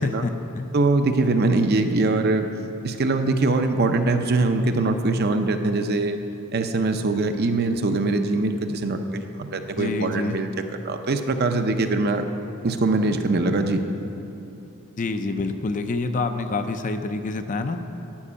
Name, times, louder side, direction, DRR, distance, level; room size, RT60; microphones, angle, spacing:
voice 1, 0.0-0.7 9.8-10.4 15.0-17.8, left 3 dB, 35° left, 8 dB, 0.5 m, -27 dB
voice 2, 0.7-2.5 2.8-6.2 6.5-10.5 10.8-12.3 12.6-13.8, right 2 dB, 45° right, 7 dB, 0.6 m, -22 dB
12.0 x 5.3 x 8.6 m, 2.8 s
head